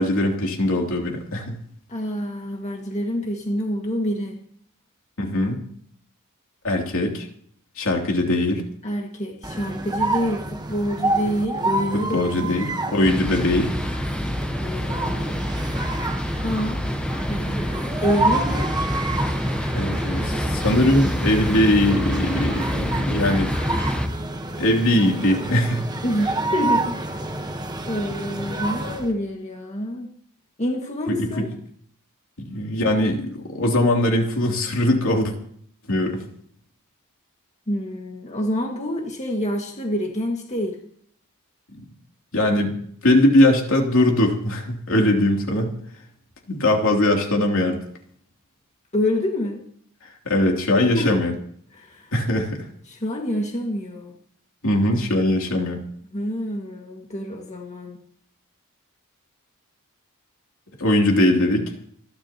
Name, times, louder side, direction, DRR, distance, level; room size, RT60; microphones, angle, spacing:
voice 1, 0.0-1.6 5.2-5.6 6.6-7.3 7.8-8.6 11.9-13.7 19.7-23.5 24.6-25.8 31.1-31.4 32.4-35.3 35.9-36.2 42.3-45.7 46.5-47.8 50.0-51.3 52.1-52.7 54.6-55.8 60.8-61.7, left 1 dB, 65° left, 1 dB, 3.2 m, -21 dB
voice 2, 1.9-4.4 8.8-12.6 14.6-15.6 16.4-16.8 17.3-18.7 26.0-27.2 27.9-30.1 30.6-31.5 37.7-40.8 48.9-49.6 50.9-51.1 51.7-52.1 52.9-54.1 56.1-58.0, equal, 30° left, 0 dB, 2.0 m, -27 dB
sound 1, 9.4-29.1, right 2 dB, 20° right, 1.2 m, -28 dB
sound 2, 13.0-24.1, equal, 5° left, 1.1 m, -27 dB
27.5 x 12.0 x 3.0 m, 0.63 s
head